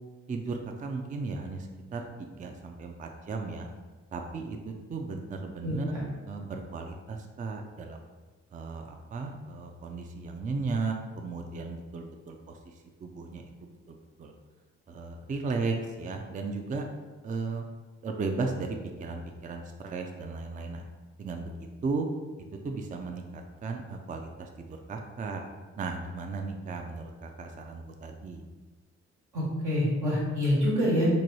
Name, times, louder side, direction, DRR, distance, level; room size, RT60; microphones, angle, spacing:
voice 1, 0.3-3.7 4.1-5.9 6.3-8.1 8.5-14.3 14.9-16.9 17.2-17.6 18.0-20.9 21.2-21.5 21.8-22.1 22.6-25.4 25.8-28.4, right 4 dB, 25° right, 3 dB, 0.4 m, -35 dB
voice 2, 5.6-6.0 29.3-31.1, equal, 80° right, -6 dB, 1.3 m, -26 dB
3.0 x 2.3 x 4.0 m, 1.3 s
supercardioid pair, 60°, 30 cm